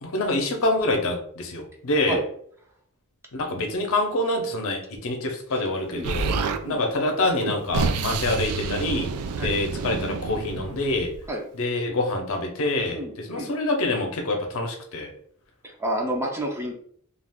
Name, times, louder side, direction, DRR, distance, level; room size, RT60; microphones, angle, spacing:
voice 1, 0.0-2.2 3.3-6.3 6.6-9.1 9.4-11.1 11.6-13.0 13.3-15.1, left 2 dB, 65° left, 2 dB, 0.6 m, -26 dB
Explosion, 6.0-6.6 7.4-11.3, right 4 dB, 90° right, 0.3 m, -28 dB
voice 2, 12.9-13.5 15.6-16.7, right 1 dB, 10° right, 0 dB, 0.5 m, -30 dB
2.4 x 2.4 x 3.4 m, 0.62 s
head